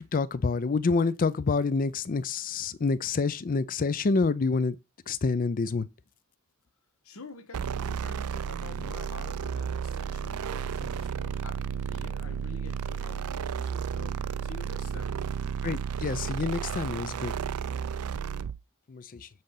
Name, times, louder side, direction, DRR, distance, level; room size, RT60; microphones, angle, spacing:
voice 1, 0.0-4.8 5.1-5.9 15.6-17.3 18.9-19.3, left 4 dB, 40° left, 0.4 m, -27 dB
voice 2, 7.0-15.2, left 3 dB, 65° left, 1.0 m, -47 dB
sound 1, 7.5-18.6, right 7 dB, 85° right, 0.4 m, -33 dB
7.5 x 3.9 x 5.7 m
head